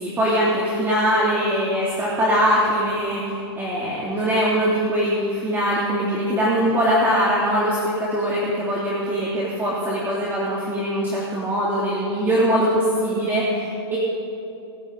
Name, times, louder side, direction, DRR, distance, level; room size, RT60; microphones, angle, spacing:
voice 1, 0.0-14.0, equal, 15° right, -6 dB, 2.6 m, -22 dB
27.0 x 10.5 x 3.9 m, 2.7 s
hypercardioid pair, 130°, 15 cm